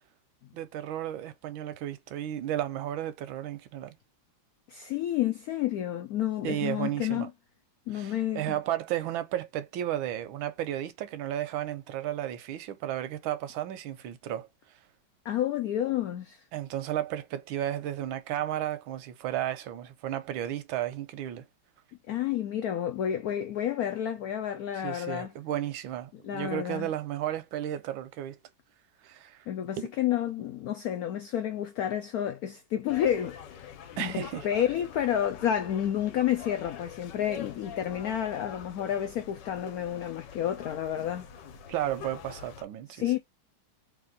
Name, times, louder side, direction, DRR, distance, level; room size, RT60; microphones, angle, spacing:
voice 1, 0.5-3.9 6.4-7.3 7.9-14.5 16.5-21.5 24.8-28.4 29.0-29.4 29.8-29.9 34.0-34.5 41.7-43.0, right 12 dB, 85° right, 1.4 m, -33 dB
voice 2, 4.7-7.3 7.9-8.6 15.2-16.4 22.1-25.3 26.2-26.9 29.5-33.4 34.0-41.3 42.9-43.2, left 10 dB, 85° left, 0.8 m, -30 dB
sound 1, 32.9-42.6, left 7 dB, 65° left, 1.4 m, -45 dB
3.5 x 3.2 x 3.8 m
omnidirectional pair, 2.2 m